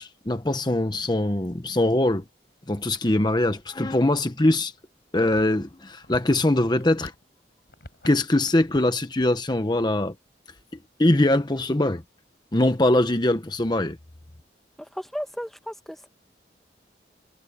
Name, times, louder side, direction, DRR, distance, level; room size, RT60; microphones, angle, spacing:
voice 1, 0.0-2.2 2.7-4.7 5.1-7.1 8.0-10.1 11.0-12.0 12.5-14.0, left 1 dB, 25° left, 1.0 m, -22 dB
sound 1, 5.4-7.3 7.6-8.1 8.4-8.9 9.2-9.4 9.8-9.9 10.5-11.0, left 1 dB, 65° left, 4.1 m, -46 dB
voice 2, 14.9-16.1, equal, ahead, 1.2 m, -34 dB
head